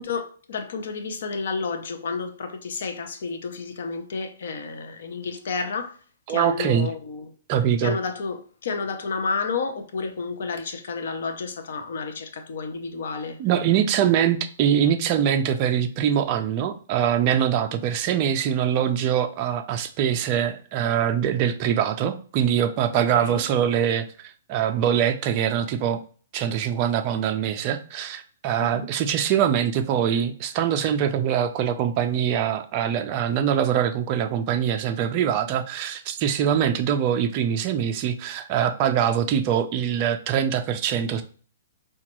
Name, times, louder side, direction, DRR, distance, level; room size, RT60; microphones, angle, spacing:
voice 1, 0.0-6.0 6.3-7.3 7.8-13.4 23.1-23.5 28.6-28.9, left 4 dB, 55° left, 0.5 m, -31 dB
voice 2, 6.3-6.9 7.5-8.0 13.4-26.0 26.3-41.2, right 9 dB, 25° right, 0.3 m, -23 dB
4.9 x 2.2 x 2.9 m
hypercardioid pair, 180°, 0 cm